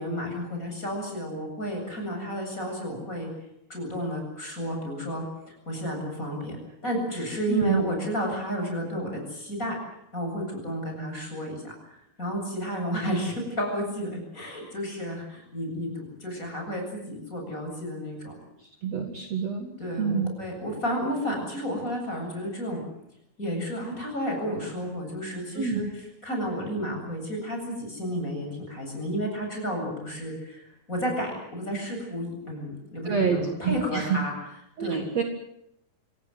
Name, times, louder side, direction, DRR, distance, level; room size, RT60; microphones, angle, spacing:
voice 1, 0.0-3.3 3.7-5.2 5.7-6.6 6.8-9.8 10.1-18.3 19.8-22.8 23.4-34.3 34.8-35.1, equal, 20° left, 2 dB, 8.2 m, -32 dB
voice 2, 7.5-7.8 18.8-20.3 25.5-25.8 33.0-34.2 34.8-35.2, right 6 dB, 50° right, 4 dB, 2.9 m, -27 dB
26.0 x 17.5 x 9.5 m, 0.79 s
omnidirectional pair, 4.3 m